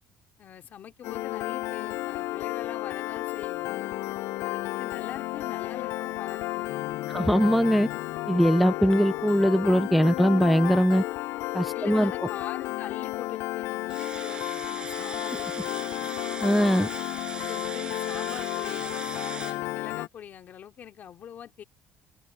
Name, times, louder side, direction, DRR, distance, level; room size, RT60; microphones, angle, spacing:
voice 1, 0.4-4.0 4.4-7.2 11.7-16.1 17.4-21.6, left 9 dB, 40° left, 2.8 m, -43 dB
Piano, 1.0-20.1, left 17 dB, 80° left, 0.5 m, -32 dB
voice 2, 7.1-7.9 8.3-11.0 11.5-12.1 16.4-16.9, equal, ahead, 0.4 m, -21 dB
sound 1, 13.9-19.6, right 5 dB, 20° right, 5.5 m, -40 dB
cardioid pair, 180°, 4 cm